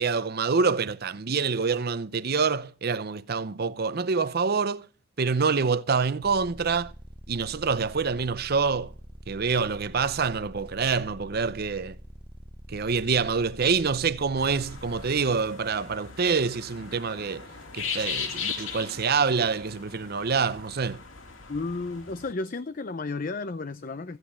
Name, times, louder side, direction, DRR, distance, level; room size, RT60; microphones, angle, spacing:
voice 1, 0.0-4.9 5.2-6.9 7.3-9.0 9.3-12.0 12.7-17.5 17.7-21.0, right 5 dB, 50° right, 0.6 m, -26 dB
sound 1, 6.2-15.1, equal, 5° right, 0.8 m, -45 dB
sound 2, 14.4-22.3, left 6 dB, 75° left, 2.5 m, -38 dB
voice 2, 21.5-24.2, left 3 dB, 40° left, 0.5 m, -33 dB
15.5 x 8.8 x 5.6 m
head